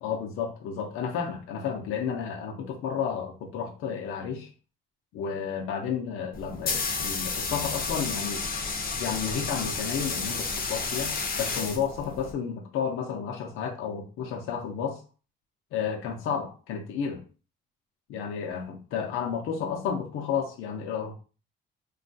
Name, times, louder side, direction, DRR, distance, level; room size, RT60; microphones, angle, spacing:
voice 1, 0.0-4.5 5.1-8.5 9.0-15.0 15.7-17.2 18.1-21.1, left 7 dB, 85° left, 3 dB, 0.6 m, -32 dB
sound 1, 6.3-12.3, left 4 dB, 45° left, 0.7 m, -31 dB
3.1 x 2.3 x 2.6 m, 0.35 s
cardioid pair, 105°, 21 cm